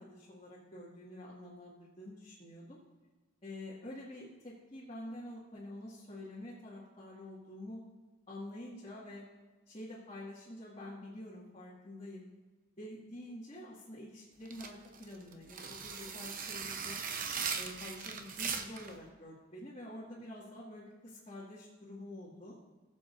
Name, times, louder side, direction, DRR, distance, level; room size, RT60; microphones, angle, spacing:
voice 1, 0.0-2.8 3.4-7.8 8.3-9.2 9.7-12.2 12.8-17.0 17.6-22.6, left 1 dB, 30° left, -8 dB, 2.0 m, -47 dB
sound 1, 14.5-18.9, right 6 dB, 45° right, 0.8 m, -39 dB
19.0 x 7.5 x 2.6 m, 1.3 s
head